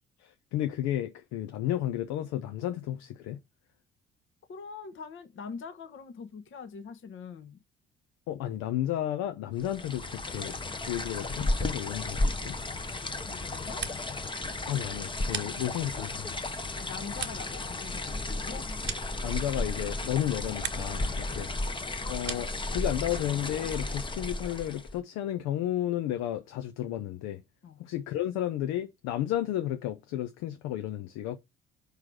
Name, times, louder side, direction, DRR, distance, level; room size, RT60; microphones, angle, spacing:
voice 1, 0.2-3.4 8.3-10.5 10.9-12.6 14.7-16.4 19.2-21.5 22.1-27.4 27.8-31.4, left 12 dB, 60° left, 0.7 m, -32 dB
voice 2, 4.5-7.6 13.3-13.8 16.8-18.7 21.4-21.5 27.6-27.8, left 6 dB, 40° left, 1.1 m, -43 dB
sound 1, 9.6-25.0, left 2 dB, 15° left, 0.9 m, -34 dB
sound 2, 15.2-16.1 16.5-19.8 20.1-21.0 21.3-22.7, right 8 dB, 35° right, 0.9 m, -41 dB
4.8 x 4.8 x 5.9 m
figure-of-eight pair, 50°, 30 cm